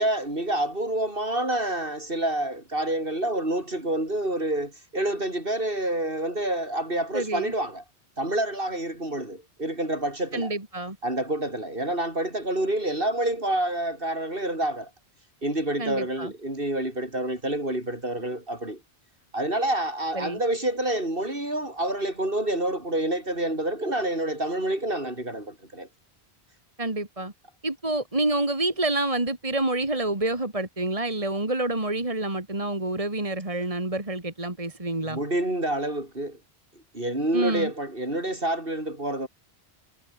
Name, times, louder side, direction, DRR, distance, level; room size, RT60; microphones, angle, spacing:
voice 1, 0.0-7.8 8.2-10.5 11.0-14.9 15.4-18.8 19.3-25.9 35.0-36.4 36.9-39.3, right 1 dB, 55° right, 6.7 m, -28 dB
voice 2, 7.1-7.5 10.3-11.0 15.8-16.3 20.1-20.4 26.8-27.3 27.6-35.2 37.3-37.7, right 2 dB, 30° right, 2.8 m, -28 dB
omnidirectional pair, 1.1 m